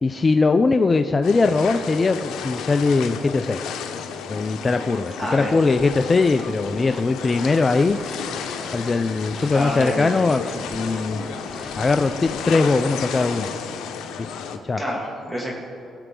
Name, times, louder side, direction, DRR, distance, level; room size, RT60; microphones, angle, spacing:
voice 1, 0.0-3.6 4.3-8.0 8.7-11.2 11.7-13.5 14.2-14.3 14.6-14.8, left 3 dB, 30° left, 7 dB, 0.4 m, -20 dB
sound 1, 1.2-14.6, left 7 dB, 85° left, 0.9 m, -33 dB
voice 2, 5.2-5.5 9.5-10.2 11.3-11.8 14.8-15.5, equal, 15° right, -2 dB, 2.3 m, -28 dB
Scratching (performance technique), 5.7-6.0 6.4-8.9 9.2-13.4, left 1 dB, 5° left, 1.1 m, -39 dB
19.0 x 7.9 x 3.8 m, 2.7 s
cardioid pair, 90°, 0 cm